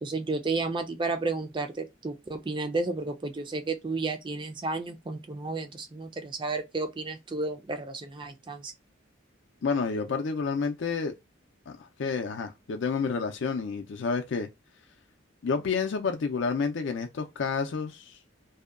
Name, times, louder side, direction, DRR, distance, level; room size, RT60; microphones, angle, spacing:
voice 1, 0.0-8.7, right 3 dB, 25° right, 0.4 m, -32 dB
voice 2, 9.6-11.1 11.7-11.8 12.0-14.5 15.4-18.2, left 5 dB, 65° left, 0.4 m, -29 dB
2.7 x 2.2 x 2.3 m
head